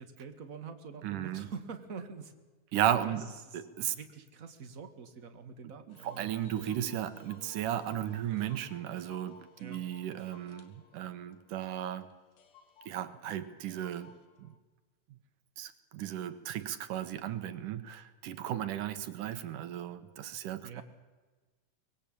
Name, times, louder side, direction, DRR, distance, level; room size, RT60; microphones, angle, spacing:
voice 1, 0.0-2.3 3.1-3.6 3.9-6.5 9.6-9.8 20.6-20.8, right 5 dB, 35° right, 7 dB, 1.6 m, -45 dB
voice 2, 1.0-1.5 2.7-4.0 5.9-12.1 12.9-14.1 14.4-14.5 15.6-20.8, right 11 dB, 75° right, 11 dB, 2.7 m, -35 dB
sound 1, 5.9-14.6, left 7 dB, 70° left, 3.3 m, -59 dB
24.0 x 20.5 x 8.7 m, 1.3 s
omnidirectional pair, 3.9 m